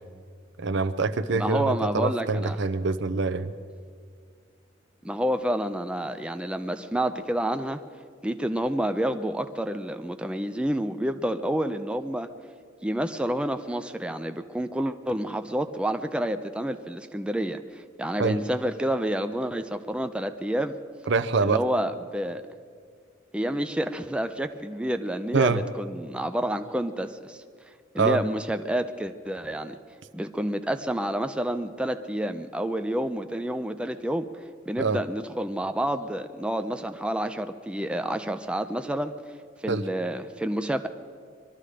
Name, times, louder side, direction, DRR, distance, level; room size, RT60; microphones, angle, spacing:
voice 1, 0.6-3.5 18.2-18.4 21.1-21.6 25.3-25.6 28.0-28.2 34.8-35.0 39.7-39.8, right 4 dB, 65° right, 11 dB, 0.7 m, -25 dB
voice 2, 1.3-2.6 5.0-7.8 8.2-12.3 12.8-20.7 21.4-22.4 23.3-27.4 27.9-29.8 30.1-34.3 34.7-39.1 39.6-40.9, right 1 dB, 5° right, 8 dB, 0.4 m, -29 dB
23.0 x 13.0 x 5.0 m, 2.1 s
head